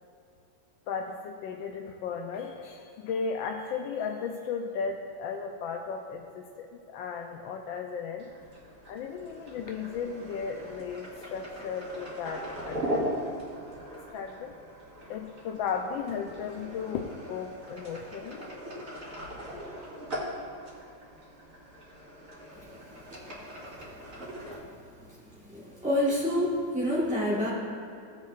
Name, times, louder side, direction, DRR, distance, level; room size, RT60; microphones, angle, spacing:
voice 1, 0.9-8.3 8.9-13.1 13.9-14.5 15.1-18.4, left 6 dB, 75° left, 2 dB, 1.3 m, -35 dB
sound 1, 8.2-24.6, equal, 40° right, 2.3 m, -40 dB
voice 2, 25.4-27.5, left 1 dB, 5° right, -9 dB, 0.9 m, -27 dB
16.5 x 7.5 x 2.5 m, 2.5 s
omnidirectional pair, 2.4 m